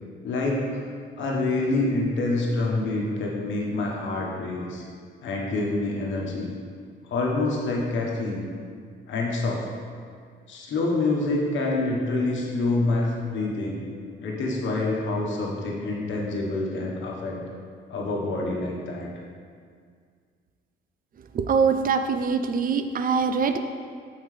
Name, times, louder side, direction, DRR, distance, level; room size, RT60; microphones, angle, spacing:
voice 1, 0.2-0.7 1.2-4.8 5.2-6.5 7.1-8.4 9.1-9.7 10.5-13.8 14.2-17.4 17.9-19.1, left 2 dB, 70° left, -2 dB, 1.2 m, -26 dB
voice 2, 21.3-23.6, right 5 dB, 45° right, 8 dB, 0.4 m, -23 dB
6.5 x 5.7 x 3.3 m, 2.1 s
cardioid pair, 90°, 20 cm